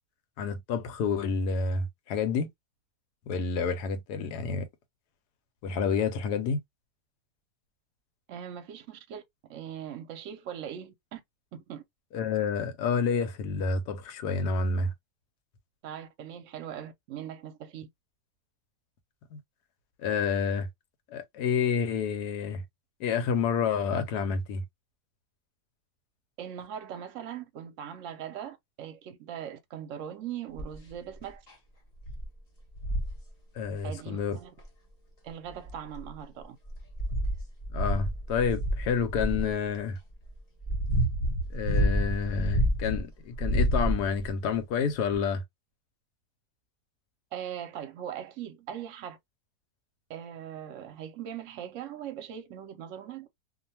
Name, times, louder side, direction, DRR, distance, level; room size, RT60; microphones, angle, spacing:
voice 1, 0.4-2.5 3.3-4.7 5.6-6.6 12.1-14.9 19.3-19.4 20.0-20.7 21.1-22.6 23.0-24.6 33.6-34.4 37.7-40.0 41.5-45.4, left 5 dB, 90° left, 1.2 m, -29 dB
voice 2, 8.3-9.2 9.5-11.2 11.5-11.8 15.8-17.9 26.4-31.4 33.8-34.5 35.2-36.6 47.3-49.2 50.1-53.3, right 9 dB, 65° right, 0.9 m, -40 dB
sound 1, 30.6-30.9 31.5-31.6 32.0-32.3 32.7-33.2 34.6-34.7 35.5-36.2 36.7-39.5 40.3-43.0 43.4-44.3 45.1-45.2, equal, 35° left, 0.7 m, -28 dB
2.7 x 2.2 x 2.7 m
omnidirectional pair, 1.7 m